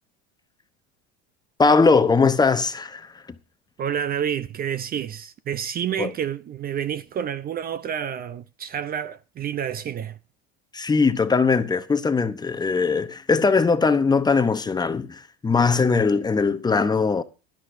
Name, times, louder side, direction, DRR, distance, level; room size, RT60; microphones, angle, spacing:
voice 1, 1.6-3.3 6.0-6.1 10.7-17.2, left 4 dB, 15° left, 0.8 m, -20 dB
voice 2, 3.8-10.2, right 9 dB, 30° right, 0.6 m, -29 dB
16.5 x 11.5 x 2.7 m
cardioid pair, 135°, 30 cm